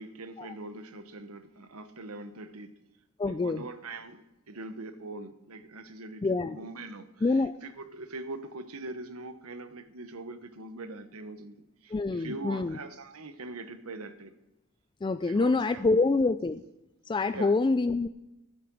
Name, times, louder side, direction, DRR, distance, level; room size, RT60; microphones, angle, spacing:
voice 1, 0.0-2.7 3.2-11.6 11.8-14.3 15.2-15.8 17.3-17.7, right 2 dB, 85° right, 1.1 m, -42 dB
voice 2, 3.2-3.6 6.2-6.6 7.2-7.5 11.9-12.8 15.0-16.6 17.1-18.1, left 3 dB, 20° left, 0.3 m, -26 dB
13.0 x 8.6 x 6.2 m
head